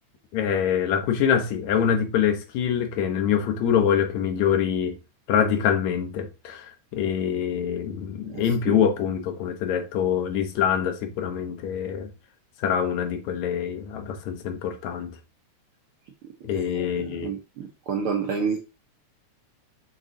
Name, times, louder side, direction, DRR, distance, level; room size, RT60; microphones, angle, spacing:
voice 1, 0.3-5.0 5.3-12.1 12.6-15.2 16.4-17.3, left 8 dB, 75° left, 2.2 m, -25 dB
voice 2, 8.2-8.8 16.5-18.6, right 6 dB, 70° right, 1.3 m, -30 dB
6.6 x 3.8 x 3.8 m
omnidirectional pair, 3.3 m